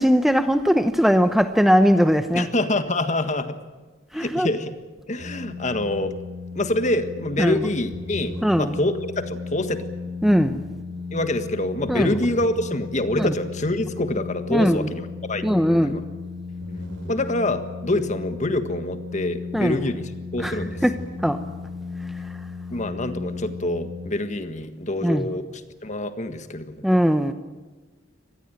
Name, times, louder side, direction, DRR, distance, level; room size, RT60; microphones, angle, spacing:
voice 1, 0.0-2.5 4.1-4.5 7.4-7.7 8.4-8.7 10.2-10.6 11.9-12.1 13.2-13.3 14.5-14.9 15.4-16.0 19.5-19.8 20.4-21.4 25.0-25.3 26.8-27.3, equal, ahead, 9 dB, 0.8 m, -20 dB
voice 2, 2.3-3.6 4.1-4.7 5.1-6.1 6.5-9.8 11.1-16.0 17.1-20.8 22.7-26.9, left 1 dB, 40° left, 9 dB, 1.7 m, -26 dB
sound 1, 5.2-24.1, left 4 dB, 70° right, 6.3 m, -35 dB
25.5 x 19.0 x 9.1 m, 1.3 s
head